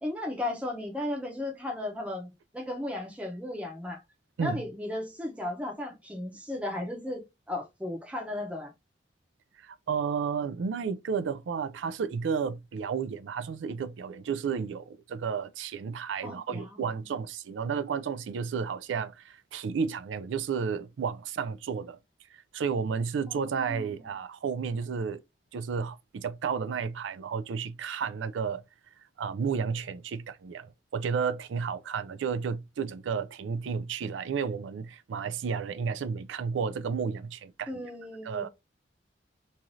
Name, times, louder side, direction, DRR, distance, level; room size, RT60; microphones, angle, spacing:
voice 1, 0.0-4.0 4.4-8.7 16.2-17.0 23.3-23.9 37.7-38.5, left 1 dB, 5° right, 0.7 m, -35 dB
voice 2, 9.6-22.0 22.3-25.2 25.5-28.6 29.2-37.9 38.2-38.5, right 6 dB, 85° right, 0.4 m, -32 dB
3.1 x 2.4 x 2.6 m
head